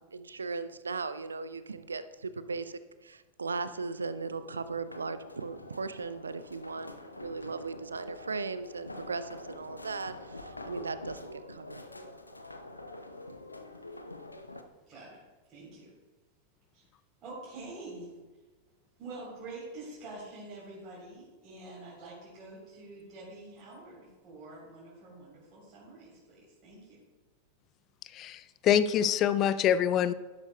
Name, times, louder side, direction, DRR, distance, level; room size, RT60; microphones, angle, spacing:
voice 1, 0.0-6.9 7.2-11.8, right 4 dB, 75° right, 13 dB, 0.5 m, -37 dB
sound 1, 4.1-14.6, left 2 dB, 85° left, 0.7 m, -46 dB
voice 2, 14.9-15.2 15.5-15.9 16.7-16.8 17.2-18.1 19.0-27.0, right 2 dB, 25° right, -7 dB, 3.4 m, -46 dB
voice 3, 28.1-30.1, left 9 dB, 35° left, 14 dB, 0.4 m, -25 dB
11.5 x 11.5 x 2.2 m, 1.2 s
figure-of-eight pair, 90°, 0 cm